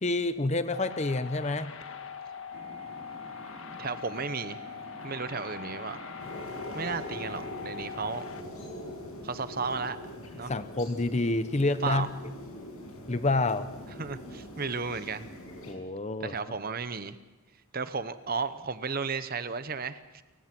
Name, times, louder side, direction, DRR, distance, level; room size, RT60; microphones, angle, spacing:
voice 1, 0.0-1.7 10.5-12.1 13.1-13.7 15.7-16.4, left 2 dB, 30° left, 12 dB, 0.8 m, -28 dB
sound 1, 0.7-8.4, left 6 dB, 65° left, 1.7 m, -42 dB
sound 2, 2.5-7.5, right 1 dB, 70° right, 3.3 m, -49 dB
voice 2, 3.7-4.6 5.0-6.0 6.7-8.2 9.2-10.0 10.3-10.5 11.8-12.1 14.0-15.3 16.2-17.2 17.7-20.2, right 5 dB, 45° right, 12 dB, 0.9 m, -34 dB
sound 3, 6.2-15.7, left 1 dB, 90° left, 6.1 m, -43 dB
29.0 x 16.0 x 6.0 m, 1.1 s
head